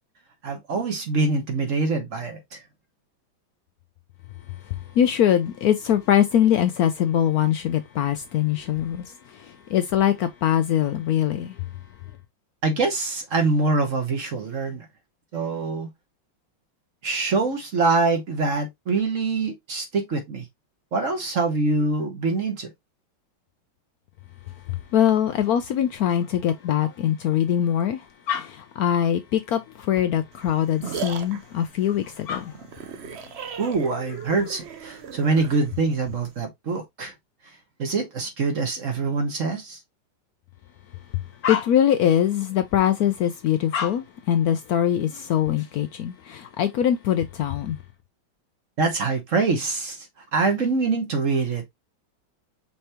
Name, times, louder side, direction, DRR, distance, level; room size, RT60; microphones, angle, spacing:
voice 1, 0.4-2.6 12.6-14.8 15.3-15.9 17.0-20.4 20.9-22.7 33.6-37.1 37.8-39.8 48.8-50.0 50.3-51.7, right 3 dB, 45° right, 1.3 m, -24 dB
voice 2, 5.0-9.0 9.7-11.5 24.9-28.0 28.3-32.5 41.4-47.8, left 10 dB, 75° left, 0.8 m, -22 dB
sound 1, 30.3-36.4, right 7 dB, 80° right, 0.5 m, -37 dB
5.7 x 3.2 x 2.8 m
omnidirectional pair, 2.1 m